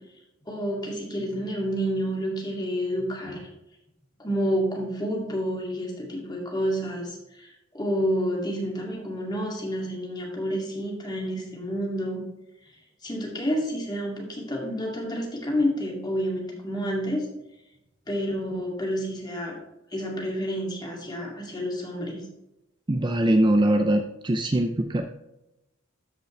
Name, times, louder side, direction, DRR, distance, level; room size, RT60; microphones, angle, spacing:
voice 1, 0.5-3.5 4.2-12.2 13.0-17.3 18.1-19.5 19.9-22.2, equal, 20° left, -2 dB, 2.4 m, -29 dB
voice 2, 22.9-25.0, right 1 dB, 25° right, 5 dB, 0.5 m, -22 dB
13.0 x 5.2 x 3.2 m, 0.91 s
head